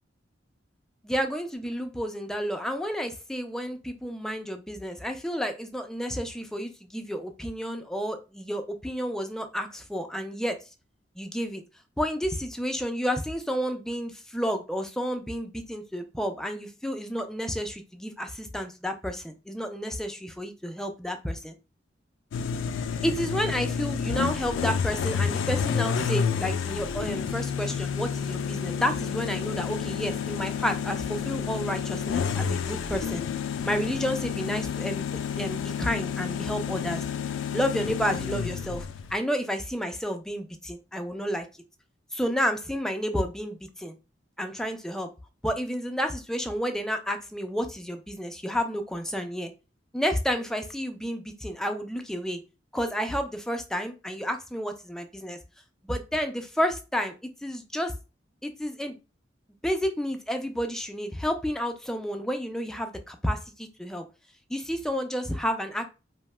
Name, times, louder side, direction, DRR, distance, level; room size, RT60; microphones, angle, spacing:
voice 1, 1.0-10.6 11.2-11.6 12.0-21.6 23.0-33.2 33.6-35.1 35.4-37.0 37.5-41.5 42.1-43.9 44.4-45.1 45.4-49.5 49.9-52.4 52.7-55.4 55.8-57.1 57.4-57.9 58.4-59.0 59.6-64.0 64.5-65.9, equal, 5° left, 6 dB, 0.3 m, -31 dB
sound 1, 22.3-39.1, left 6 dB, 90° left, 0.3 m, -30 dB
2.7 x 2.2 x 3.1 m, 0.29 s
head